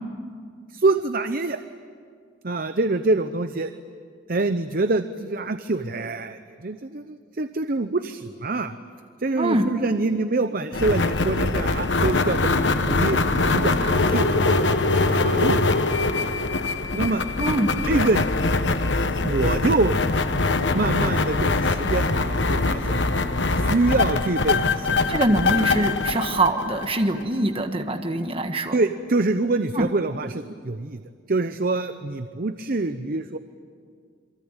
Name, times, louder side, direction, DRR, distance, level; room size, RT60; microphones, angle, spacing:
voice 1, 0.7-1.6 2.4-3.7 4.3-8.8 9.2-12.5 12.9-16.3 16.9-17.2 17.8-18.3 19.2-19.9 20.7-23.0 23.6-25.2 28.7-31.0 31.3-33.4, right 2 dB, 50° right, 9 dB, 0.8 m, -25 dB
voice 2, 9.3-9.7 17.4-17.7 25.1-28.7 29.7-29.9, right 1 dB, 30° right, 5 dB, 1.5 m, -23 dB
sound 1, 10.7-27.2, left 3 dB, 75° left, 1.2 m, -23 dB
28.0 x 23.0 x 9.0 m, 2.1 s
head